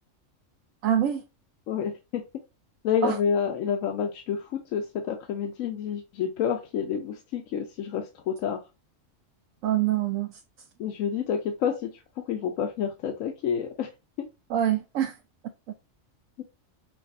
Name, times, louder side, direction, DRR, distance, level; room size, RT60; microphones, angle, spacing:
voice 1, 0.8-1.2 3.0-3.2 9.6-10.4 14.5-15.2, right 11 dB, 90° right, 1.0 m, -25 dB
voice 2, 1.7-2.2 2.8-8.6 10.8-13.9 14.2-14.3 16.4-16.5, left 7 dB, 85° left, 1.0 m, -29 dB
5.7 x 2.4 x 2.6 m
omnidirectional pair, 1.3 m